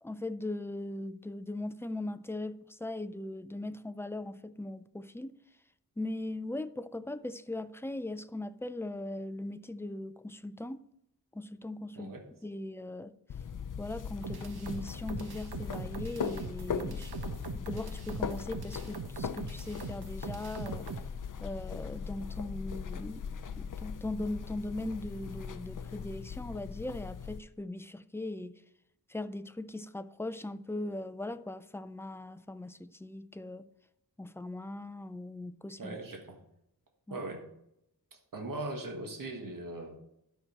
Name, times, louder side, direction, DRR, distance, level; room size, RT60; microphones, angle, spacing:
voice 1, 0.0-5.4 6.0-10.9 11.3-12.1 12.4-13.1 13.8-17.2 17.5-20.9 21.4-23.3 23.6-28.6 29.1-33.7 34.2-36.0 37.1-37.2, left 2 dB, 5° left, 0.3 m, -39 dB
sound 1, 13.3-27.4, left 6 dB, 50° left, 0.6 m, -39 dB
sound 2, 14.2-21.1, right 6 dB, 70° right, 0.8 m, -42 dB
voice 2, 35.8-36.4 37.1-37.4 38.3-40.0, right 2 dB, 55° right, 1.5 m, -39 dB
11.5 x 6.1 x 4.4 m
wide cardioid pair, 110°, 40 cm